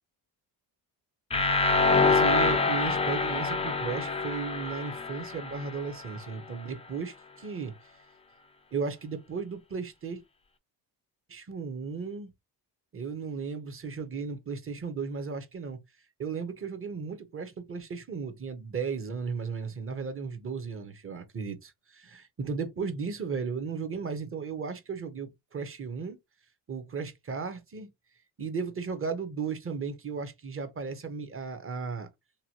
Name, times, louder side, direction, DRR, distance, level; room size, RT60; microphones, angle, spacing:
sound 1, 1.3-6.2, left 3 dB, 15° left, 0.4 m, -26 dB
voice 1, 2.0-7.7 8.7-10.2 11.3-12.3 12.9-15.8 16.2-26.2 26.7-27.9 28.4-32.1, right 5 dB, 30° right, 0.7 m, -35 dB
2.9 x 2.2 x 2.8 m
supercardioid pair, 75°, 45 cm